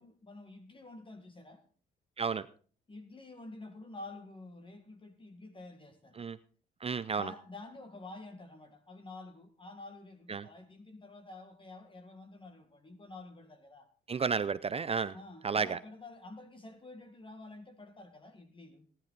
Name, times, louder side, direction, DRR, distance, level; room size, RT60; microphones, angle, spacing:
voice 1, 0.0-1.6 2.9-6.2 7.1-13.9 15.1-18.9, left 2 dB, 25° left, 1.8 m, -49 dB
voice 2, 6.8-7.3 10.3-10.5 14.1-15.1 15.4-15.8, right 5 dB, 30° right, 0.5 m, -32 dB
17.5 x 10.5 x 4.0 m
cardioid pair, 90°, 20 cm